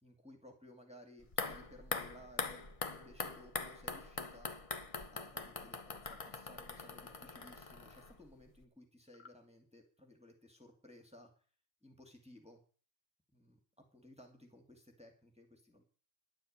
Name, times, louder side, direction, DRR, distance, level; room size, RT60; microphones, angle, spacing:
voice 1, 0.0-4.6 5.1-11.3 11.8-12.6 13.3-13.6 13.9-15.8, left 1 dB, 5° right, 3 dB, 2.4 m, -58 dB
sound 1, 1.2-8.3 8.6-8.7, left 4 dB, 30° left, 0.9 m, -43 dB
sound 2, 5.9-6.3 9.1-9.4, left 4 dB, 50° left, 1.4 m, -59 dB
11.0 x 8.7 x 8.8 m, 0.41 s
omnidirectional pair, 1.2 m